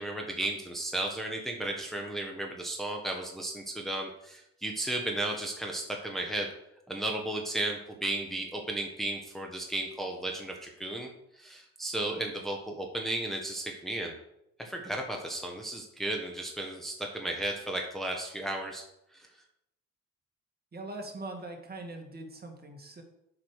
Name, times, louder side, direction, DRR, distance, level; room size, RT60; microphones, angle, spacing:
voice 1, 0.0-6.5 6.9-14.1 14.6-18.8 19.1-19.3, right 1 dB, ahead, 1 dB, 1.3 m, -34 dB
voice 2, 20.7-23.0, right 2 dB, 30° right, 3 dB, 1.9 m, -42 dB
8.3 x 4.9 x 6.5 m, 0.81 s
cardioid pair, 90°, 30 cm